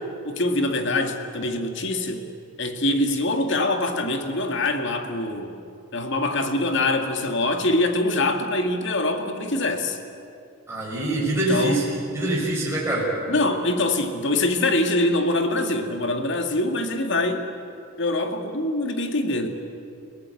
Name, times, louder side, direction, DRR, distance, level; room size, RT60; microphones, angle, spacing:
voice 1, 0.2-2.3 2.6-5.6 5.9-10.0 11.3-11.9 13.3-17.4 18.0-19.5, left 2 dB, 55° left, 5 dB, 2.1 m, -24 dB
voice 2, 10.7-11.8 12.1-13.1, right 1 dB, 10° right, -6 dB, 6.1 m, -24 dB
29.5 x 18.5 x 8.4 m, 2.5 s
head